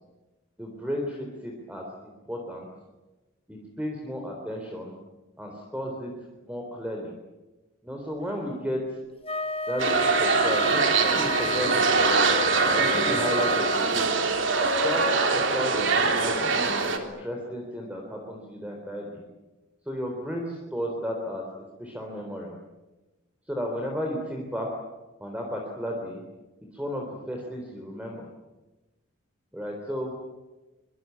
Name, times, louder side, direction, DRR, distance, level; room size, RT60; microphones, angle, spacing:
voice 1, 0.6-2.7 3.5-4.9 5.4-6.1 6.4-7.1 7.8-9.0 9.7-12.0 12.7-14.1 14.8-19.3 19.9-21.4 21.8-22.5 23.5-24.7 25.2-26.2 26.7-28.3 29.5-30.1, equal, 5° right, 1 dB, 3.9 m, -33 dB
Wind instrument woodwind instrument, 9.2-14.1, left 1 dB, 25° left, 1.0 m, -30 dB
sound 1, 9.8-17.0, right 4 dB, 60° right, 3.4 m, -23 dB
24.5 x 24.0 x 9.6 m, 1.1 s
head